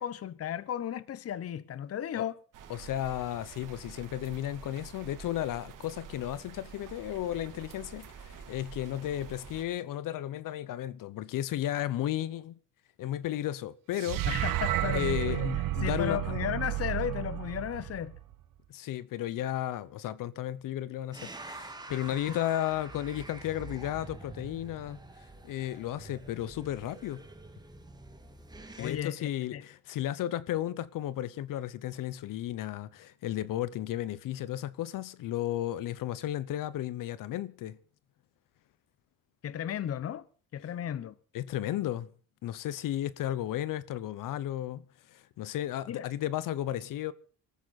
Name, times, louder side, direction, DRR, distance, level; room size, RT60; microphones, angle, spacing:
voice 1, 0.0-2.4 14.3-15.5 15.8-18.2 22.3-22.4 28.8-29.6 39.4-40.3 40.5-41.1 45.9-46.1, left 10 dB, 45° left, 1.0 m, -34 dB
sound 1, 2.5-9.6, right 6 dB, 70° right, 3.1 m, -48 dB
voice 2, 2.7-12.5 13.0-14.2 14.9-16.2 18.7-25.0 25.4-27.3 28.8-37.8 41.3-42.1 42.4-44.8 45.1-47.1, left 12 dB, 75° left, 1.0 m, -34 dB
sound 2, 14.0-18.3, right 14 dB, 90° right, 1.3 m, -32 dB
sound 3, 21.1-29.0, right 3 dB, 10° right, 2.3 m, -47 dB
25.0 x 14.0 x 4.2 m
cardioid pair, 130°, 32 cm